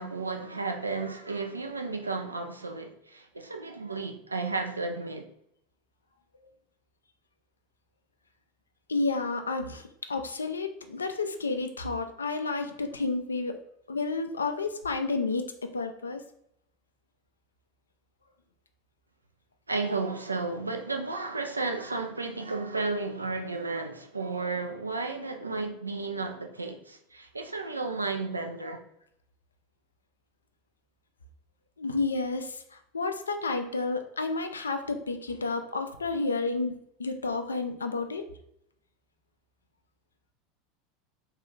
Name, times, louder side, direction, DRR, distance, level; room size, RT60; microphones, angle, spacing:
voice 1, 0.0-5.3 19.7-28.8, right 3 dB, 90° right, 0.3 m, -33 dB
voice 2, 8.9-13.6 13.9-16.2 31.8-36.7 37.0-38.2, left 3 dB, 80° left, 0.3 m, -31 dB
3.0 x 2.3 x 3.1 m
figure-of-eight pair, 80°, 0 cm